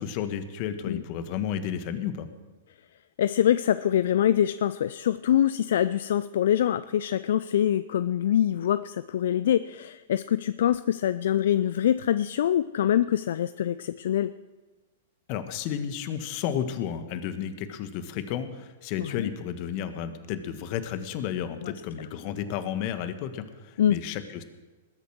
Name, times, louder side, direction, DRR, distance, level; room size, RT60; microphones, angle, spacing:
voice 1, 0.0-2.3 15.3-24.4, left 9 dB, 45° left, 10 dB, 1.4 m, -32 dB
voice 2, 3.2-14.3 19.0-19.3 21.6-21.7 23.8-24.0, left 10 dB, 65° left, 14 dB, 0.4 m, -24 dB
20.0 x 8.4 x 6.3 m, 1.2 s
hypercardioid pair, 105°, 0 cm